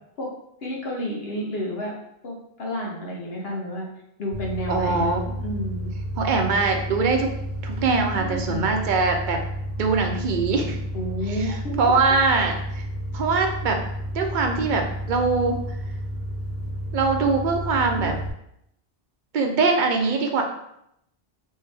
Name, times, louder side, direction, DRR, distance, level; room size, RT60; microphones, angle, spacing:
voice 1, 0.6-1.9 2.2-3.9 4.2-5.1 5.4-5.9 7.9-8.7 10.9-11.8 17.9-18.1 20.1-20.2, equal, 70° left, -2 dB, 1.0 m, -31 dB
sound 1, 4.3-18.3, equal, 90° right, 0.9 m, -31 dB
voice 2, 4.7-5.3 6.2-7.3 7.6-9.4 9.8-10.8 11.4-11.5 11.8-12.8 13.1-13.8 14.1-15.6 16.9-18.2 19.3-20.4, right 4 dB, 55° right, 3 dB, 0.6 m, -22 dB
3.3 x 2.7 x 3.2 m, 0.77 s
omnidirectional pair, 1.1 m